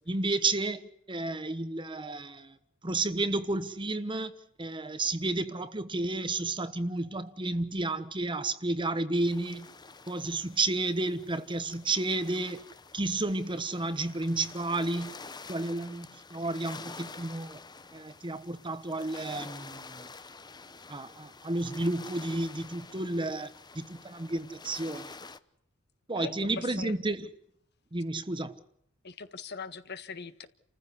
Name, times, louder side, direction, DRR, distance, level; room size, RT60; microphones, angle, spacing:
voice 1, 0.0-2.6 2.8-9.7 10.1-12.7 12.9-15.2 15.5-17.6 17.9-20.1 20.9-25.1 26.1-27.3 27.9-28.6, right 2 dB, 25° right, 1.2 m, -32 dB
sound 1, 9.1-25.4, left 4 dB, 20° left, 0.9 m, -48 dB
voice 2, 26.2-26.9 29.0-30.5, left 5 dB, 50° left, 1.6 m, -41 dB
30.0 x 15.0 x 8.4 m
head